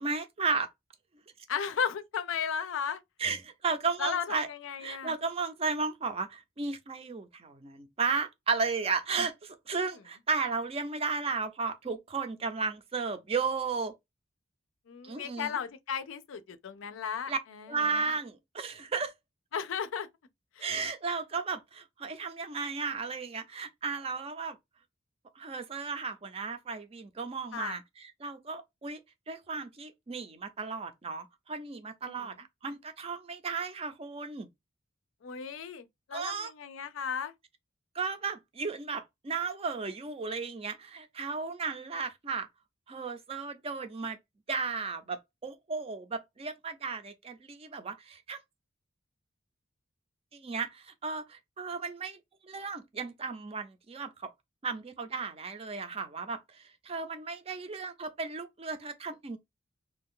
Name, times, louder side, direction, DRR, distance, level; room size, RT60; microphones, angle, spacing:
voice 1, 0.0-0.7 3.2-4.5 4.8-13.9 15.0-15.5 17.3-17.4 17.7-19.1 20.6-24.6 25.4-29.0 29.3-34.5 36.1-36.5 37.9-42.5 42.9-44.2 44.5-48.4 50.3-52.2 52.4-54.3 54.6-59.4, right 4 dB, 30° right, 0.4 m, -34 dB
voice 2, 1.5-3.0 4.0-5.1 14.9-17.7 19.5-20.1 20.6-20.7 27.5-27.8 32.1-32.3 35.2-37.3, left 7 dB, 75° left, 0.4 m, -35 dB
2.6 x 2.3 x 3.6 m
head